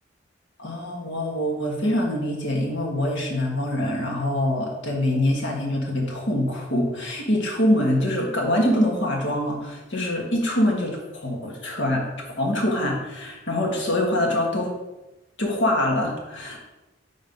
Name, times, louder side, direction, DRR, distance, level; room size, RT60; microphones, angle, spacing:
voice 1, 0.6-12.1 12.4-14.7 15.4-16.6, left 1 dB, 70° left, -1 dB, 1.5 m, -24 dB
5.3 x 3.9 x 5.2 m, 1.0 s
head